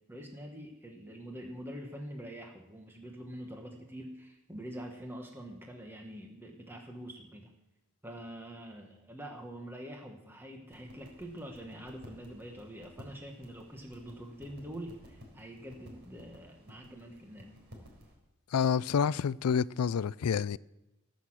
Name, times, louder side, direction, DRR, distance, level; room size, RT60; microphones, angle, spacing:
voice 1, 0.1-7.5 8.0-17.6, equal, 10° right, 1.3 m, -45 dB
sound 1, 10.7-18.1, equal, 50° right, 3.9 m, -54 dB
voice 2, 18.5-20.6, left 7 dB, 80° left, 0.4 m, -28 dB
18.5 x 6.4 x 7.5 m
head